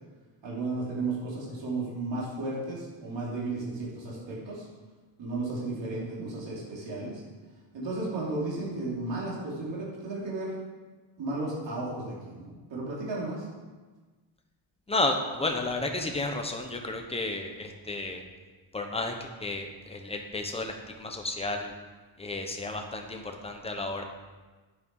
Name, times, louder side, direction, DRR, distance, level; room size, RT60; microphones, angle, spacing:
voice 1, 0.4-4.7 5.2-7.2 7.7-10.5 11.2-13.5, right 2 dB, 65° right, -5 dB, 3.2 m, -34 dB
voice 2, 14.9-18.2 18.7-21.7 22.2-24.0, left 2 dB, 15° left, 3 dB, 1.0 m, -32 dB
9.6 x 8.5 x 4.8 m, 1.3 s
wide cardioid pair, 170°, 47 cm